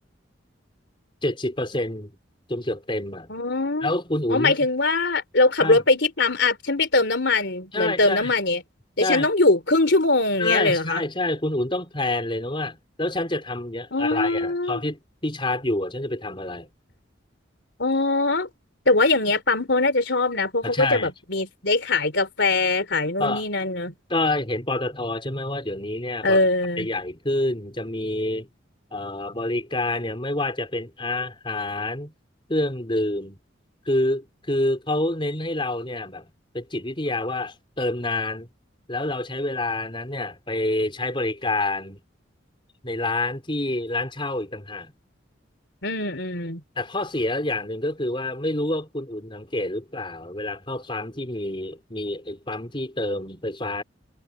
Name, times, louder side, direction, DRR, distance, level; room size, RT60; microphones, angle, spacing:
voice 1, 1.2-2.2 2.5-3.4 3.8-4.6 5.6-5.8 7.7-8.3 9.0-9.3 10.4-16.7 20.6-21.1 23.2-23.4 24.1-26.4 26.8-28.5 28.9-32.1 32.5-33.4 33.9-38.5 38.9-42.0 42.8-44.9 46.8-53.8, left 2 dB, 25° left, 4.9 m, -27 dB
voice 2, 3.3-3.9 4.3-8.6 9.0-11.0 13.9-14.8 17.8-18.5 18.9-23.9 26.2-26.9 45.8-46.6, left 2 dB, 65° left, 4.0 m, -22 dB
head